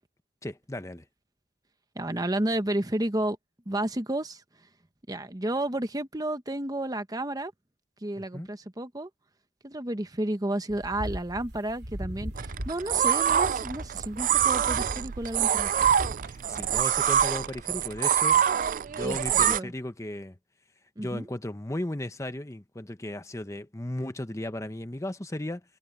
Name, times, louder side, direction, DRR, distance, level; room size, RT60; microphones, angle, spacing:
voice 1, 0.4-1.0 8.2-8.5 16.2-18.4 18.9-20.4 21.0-25.6, left 1 dB, 15° left, 1.0 m, -36 dB
voice 2, 1.9-3.4 3.7-4.4 5.1-7.5 8.0-9.1 9.6-15.7 19.0-19.7 21.0-21.3, right 1 dB, 20° right, 1.1 m, -31 dB
sound 1, 10.7-16.8, equal, 65° right, 3.5 m, -39 dB
sound 2, 12.4-19.6, right 9 dB, 50° right, 0.3 m, -25 dB
head